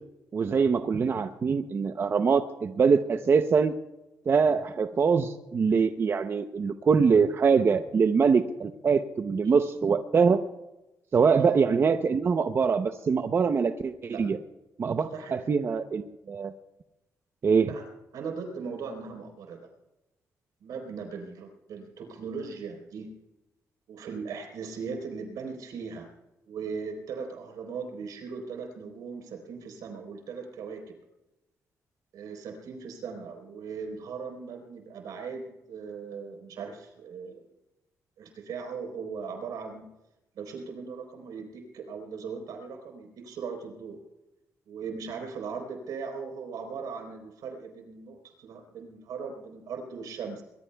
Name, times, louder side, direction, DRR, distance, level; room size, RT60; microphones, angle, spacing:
voice 1, 0.3-3.7 4.3-10.4 11.1-14.4 14.8-16.5 17.4-17.7, right 5 dB, 40° right, 8 dB, 0.7 m, -24 dB
voice 2, 15.0-15.4 17.6-17.8 18.1-19.7 20.6-23.1 23.9-26.1 26.5-31.0 32.1-37.4 38.2-39.8 40.4-44.0 44.7-50.4, right 5 dB, 85° right, 3 dB, 4.0 m, -38 dB
23.0 x 21.0 x 2.3 m, 0.98 s
cardioid pair, 105°, 6 cm